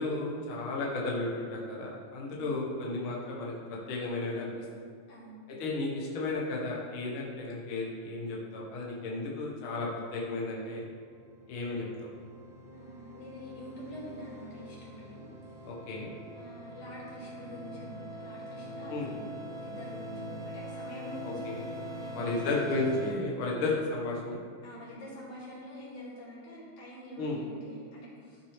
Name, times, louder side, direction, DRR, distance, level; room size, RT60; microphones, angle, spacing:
voice 1, 0.0-3.5 3.9-4.6 5.5-10.8 11.5-11.8 15.6-16.1 18.9-19.1 21.5-21.6 22.1-24.4 27.2-27.4, left 2 dB, 90° left, -3 dB, 1.1 m, -33 dB
voice 2, 2.3-2.6 5.1-5.4 12.7-15.7 16.4-21.4 22.0-22.4 24.6-28.4, equal, 50° left, -7 dB, 3.5 m, -46 dB
sound 1, 10.7-23.1, equal, 65° right, 4.0 m, -43 dB
14.0 x 6.4 x 3.3 m, 2.2 s
omnidirectional pair, 4.6 m